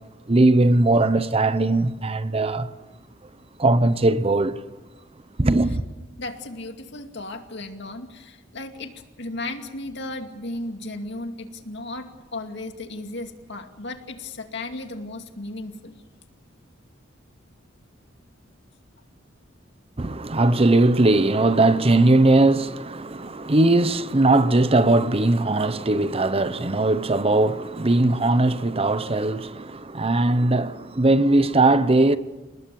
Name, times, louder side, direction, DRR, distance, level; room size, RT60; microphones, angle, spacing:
voice 1, 0.3-2.7 3.6-4.6 5.4-5.8 20.0-32.2, right 2 dB, 30° right, 0.8 m, -19 dB
voice 2, 6.2-16.0, left 2 dB, 65° left, 2.3 m, -35 dB
29.5 x 19.5 x 7.0 m
head